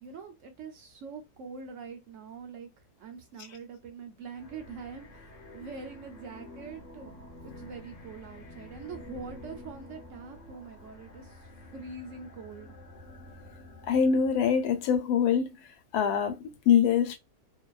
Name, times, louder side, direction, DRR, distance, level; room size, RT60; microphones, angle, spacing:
voice 1, 0.0-2.7 3.0-7.1 7.4-11.4 11.7-12.7, right 5 dB, 65° right, 0.8 m, -44 dB
sound 1, 4.3-14.9, left 2 dB, 35° left, 0.6 m, -49 dB
voice 2, 13.9-15.5 15.9-17.2, left 7 dB, 85° left, 1.1 m, -24 dB
2.6 x 2.2 x 2.3 m
omnidirectional pair, 1.6 m